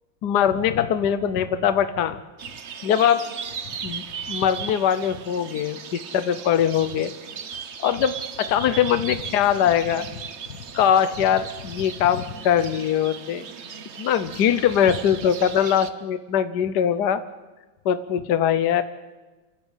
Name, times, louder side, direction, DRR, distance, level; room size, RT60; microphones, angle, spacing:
voice 1, 0.2-2.2 2.8-3.2 3.8-7.1 7.8-10.1 10.7-13.4 14.0-17.2 17.8-18.8, left 9 dB, 60° left, 11 dB, 1.3 m, -22 dB
sound 1, 2.4-15.9, right 7 dB, 45° right, 1.0 m, -37 dB
27.5 x 12.5 x 9.1 m, 1.2 s
omnidirectional pair, 2.2 m